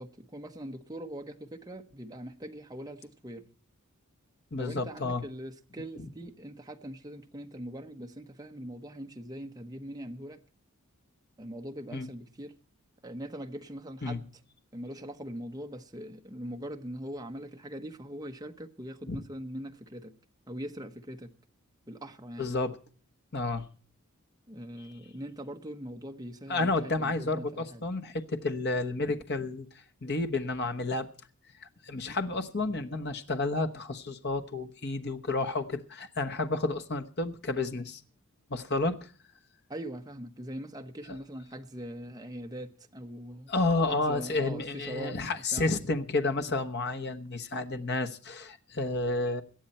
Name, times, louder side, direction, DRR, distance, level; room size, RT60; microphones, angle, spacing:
voice 1, 0.0-3.4 4.6-10.4 11.4-12.5 13.0-14.3 14.7-20.1 20.5-21.3 21.9-22.5 24.5-27.8 39.7-43.5 43.9-45.2 45.5-45.7, right 1 dB, 15° right, 1.1 m, -41 dB
voice 2, 4.5-5.2 11.9-12.1 14.0-14.2 19.1-19.2 22.4-22.8 23.3-23.7 26.5-29.7 30.0-31.1 31.8-38.0 38.5-39.1 43.5-49.4, left 3 dB, 50° left, 1.1 m, -31 dB
18.0 x 12.0 x 4.3 m
head